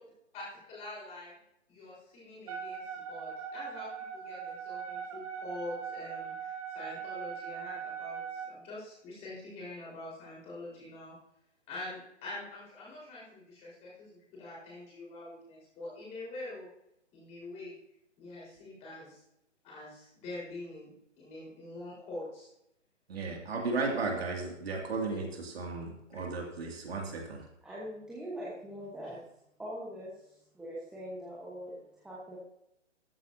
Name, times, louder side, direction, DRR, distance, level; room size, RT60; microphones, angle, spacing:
voice 1, 0.3-1.3 1.7-3.9 4.1-11.1 11.7-16.7 17.1-17.7 18.2-19.2 19.6-22.5 25.1-25.2, left 2 dB, 15° left, -5 dB, 4.3 m, -45 dB
Wind instrument woodwind instrument, 2.5-8.5, right 7 dB, 30° right, 1.9 m, -40 dB
voice 2, 23.1-27.4, right 3 dB, 55° right, 1 dB, 2.4 m, -35 dB
voice 3, 27.6-29.2 29.6-32.4, equal, ahead, -7 dB, 1.1 m, -42 dB
13.5 x 8.1 x 2.8 m, 0.79 s
figure-of-eight pair, 145°, 37 cm